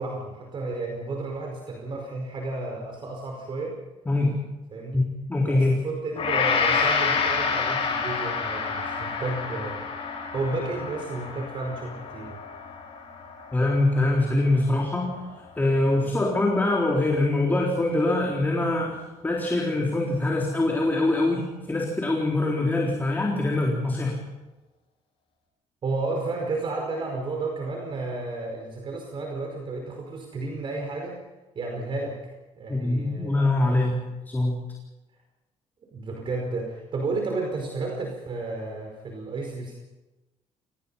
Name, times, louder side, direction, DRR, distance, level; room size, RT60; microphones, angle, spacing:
voice 1, 0.0-3.8 4.7-5.0 5.5-9.8 10.3-12.4 25.8-31.2 31.5-33.4 35.9-39.7, right 3 dB, 45° right, 1 dB, 5.0 m, -32 dB
voice 2, 4.1-4.4 4.9-5.8 13.5-15.1 15.6-24.2 32.7-34.6, left 2 dB, 15° left, -1 dB, 4.0 m, -24 dB
Gong, 6.2-14.5 14.9-15.1, left 5 dB, 50° left, 7.4 m, -28 dB
27.0 x 19.5 x 5.7 m, 1.1 s
cardioid pair, 120°, 12 cm